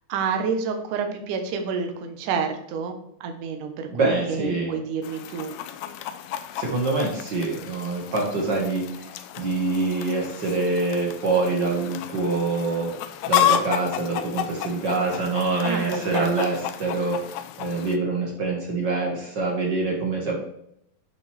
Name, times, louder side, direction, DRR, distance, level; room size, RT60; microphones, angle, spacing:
voice 1, 0.1-2.9 3.2-5.5 15.6-16.6, right 6 dB, 65° right, 5 dB, 2.3 m, -29 dB
voice 2, 3.9-4.8 6.5-9.1 9.4-12.9 13.3-20.4, right 3 dB, 50° right, -2 dB, 1.3 m, -25 dB
Chicken rooster, 5.0-18.0, left 11 dB, 85° left, 2.6 m, -31 dB
10.5 x 6.2 x 3.5 m, 0.75 s
omnidirectional pair, 4.8 m